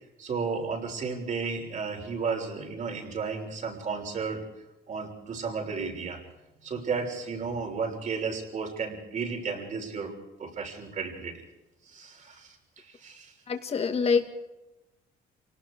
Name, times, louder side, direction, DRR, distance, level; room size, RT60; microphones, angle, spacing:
voice 1, 0.2-4.5 4.9-6.2 6.6-10.1 10.4-11.4 11.8-13.3, right 5 dB, 45° right, 3 dB, 6.3 m, -33 dB
voice 2, 13.5-14.3, left 5 dB, 35° left, 6 dB, 2.6 m, -25 dB
28.5 x 18.5 x 4.9 m, 0.97 s
cardioid pair, 110°, 17 cm